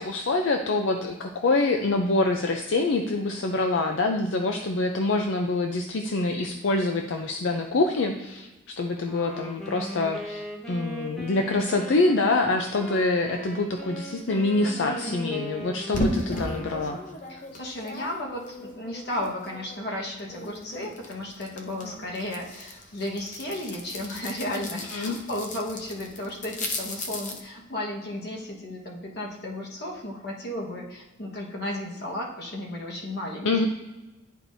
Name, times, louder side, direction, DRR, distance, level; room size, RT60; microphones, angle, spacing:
voice 1, 0.0-8.5 8.8-17.0 24.9-25.2 33.4-33.7, left 2 dB, 75° left, 3 dB, 0.5 m, -25 dB
Wind instrument woodwind instrument, 9.0-17.4, equal, 5° left, 1.0 m, -39 dB
voice 2, 14.6-15.4 17.3-33.7, left 1 dB, 55° left, -2 dB, 1.3 m, -34 dB
sound 1, 15.9-19.9 20.2-27.4, left 1 dB, 40° left, 0.8 m, -36 dB
10.5 x 4.5 x 2.6 m, 1.1 s
head